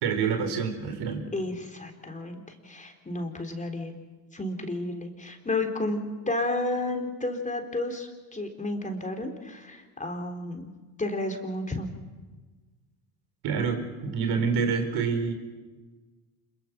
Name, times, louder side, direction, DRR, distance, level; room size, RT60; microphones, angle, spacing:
voice 1, 0.0-1.2 13.4-15.3, right 5 dB, 60° right, 7 dB, 4.2 m, -27 dB
voice 2, 1.3-3.9 4.3-10.7 11.0-11.9, left 2 dB, 15° left, 3 dB, 3.8 m, -32 dB
27.0 x 22.5 x 6.0 m, 1.3 s
hypercardioid pair, 80°, 44 cm